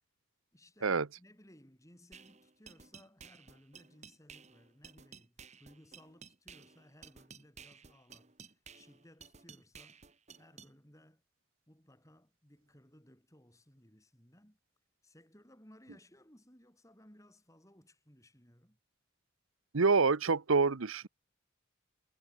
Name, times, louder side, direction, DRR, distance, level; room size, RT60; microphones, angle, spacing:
voice 1, 0.5-10.0 10.3-11.2 11.7-14.6 15.0-18.8, equal, 15° left, 6.4 m, -61 dB
sound 1, 2.1-10.7, right 6 dB, 35° right, 2.0 m, -55 dB
voice 2, 19.7-21.1, right 4 dB, 85° right, 0.9 m, -27 dB
head